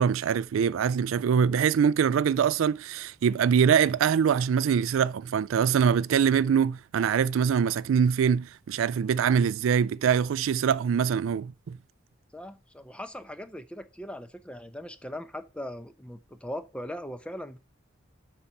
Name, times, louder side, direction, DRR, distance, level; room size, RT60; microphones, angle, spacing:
voice 1, 0.0-11.8, right 7 dB, 85° right, 0.3 m, -24 dB
voice 2, 12.3-17.6, left 1 dB, 5° left, 0.7 m, -39 dB
7.2 x 5.5 x 5.5 m
head